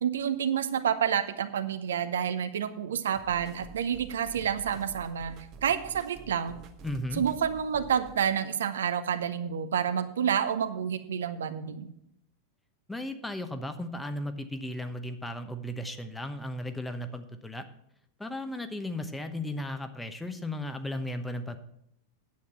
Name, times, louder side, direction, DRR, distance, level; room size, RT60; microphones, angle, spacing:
voice 1, 0.0-5.3 5.6-6.6 7.2-11.9, right 8 dB, 65° right, 10 dB, 0.7 m, -29 dB
sound 1, 3.1-8.2, right 5 dB, 35° right, 1.0 m, -48 dB
voice 2, 6.8-7.2 12.9-17.6 18.2-21.6, left 1 dB, 5° left, 8 dB, 0.9 m, -35 dB
9.5 x 8.4 x 5.7 m, 0.77 s
figure-of-eight pair, 90°, 0 cm